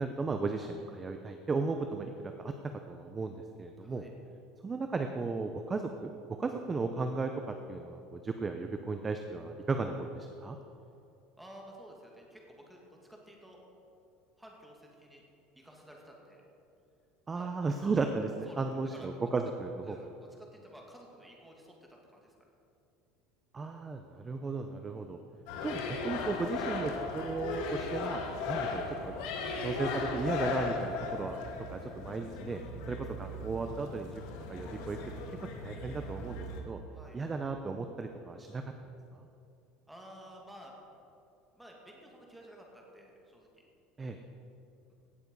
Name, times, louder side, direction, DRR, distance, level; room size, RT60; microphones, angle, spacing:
voice 1, 0.0-4.1 4.6-10.6 17.3-20.0 23.5-25.2 25.6-29.2 29.6-31.4 31.7-32.6 32.9-34.2 34.5-35.0 35.4-36.8 37.1-38.6 39.1-39.3 44.0-44.2, right 3 dB, 20° right, 6 dB, 0.6 m, -35 dB
voice 2, 3.8-4.1 11.4-13.6 14.4-15.2 15.6-16.4 17.3-17.5 18.5-18.7 18.9-19.1 19.8-22.3 28.4-28.6 36.9-37.2 39.9-40.7 41.5-43.7, equal, 5° right, -1 dB, 2.3 m, -53 dB
sound 1, 25.5-36.6, left 4 dB, 70° left, 1.6 m, -37 dB
17.0 x 7.2 x 5.4 m, 2.7 s
supercardioid pair, 135°, 0 cm